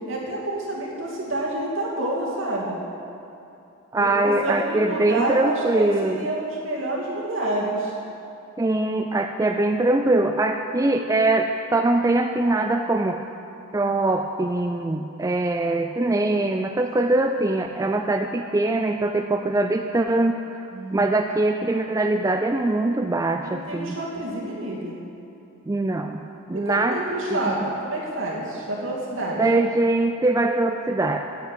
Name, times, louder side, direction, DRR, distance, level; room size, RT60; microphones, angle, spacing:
voice 1, 0.1-2.8 4.0-7.9 20.7-21.1 23.4-25.0 26.5-29.4, right 1 dB, 65° right, -4 dB, 2.5 m, -28 dB
voice 2, 3.9-6.3 8.6-13.2 13.7-20.6 20.9-24.0 25.7-26.2 26.5-27.0 27.5-27.6 29.4-31.2, right 2 dB, 15° right, 5 dB, 0.3 m, -22 dB
9.2 x 8.2 x 8.6 m, 2.7 s
head